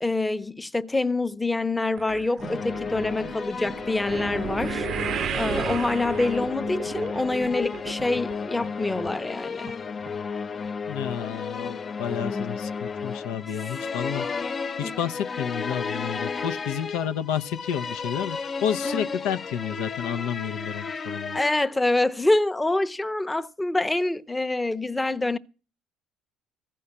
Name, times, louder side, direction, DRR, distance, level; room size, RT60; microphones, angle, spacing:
voice 1, 0.0-4.9 5.3-9.7 12.1-12.7 14.8-14.9 16.3-16.4 18.8-19.2 21.3-25.4, left 2 dB, 15° left, 0.8 m, -26 dB
sound 1, 2.0-8.4 8.6-9.1 9.7-9.8 10.1-10.2, right 9 dB, 55° right, 0.6 m, -34 dB
sound 2, 2.4-21.6, left 5 dB, 40° left, 0.6 m, -33 dB
voice 2, 10.9-14.3 14.8-21.4, left 9 dB, 80° left, 0.6 m, -30 dB
15.0 x 5.5 x 9.8 m
supercardioid pair, 70°, 0 cm